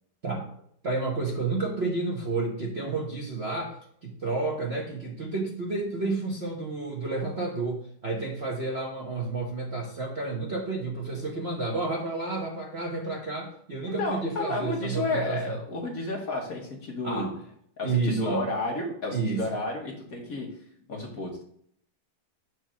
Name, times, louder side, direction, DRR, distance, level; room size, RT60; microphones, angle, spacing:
voice 1, 0.8-15.6 17.0-17.4 17.8-18.5 19.1-19.5, right 3 dB, 45° right, -2 dB, 0.9 m, -30 dB
voice 2, 14.0-17.3 17.8-20.5 20.9-21.4, left 2 dB, 50° left, 0 dB, 1.3 m, -31 dB
6.2 x 3.3 x 6.0 m, 0.65 s
omnidirectional pair, 2.3 m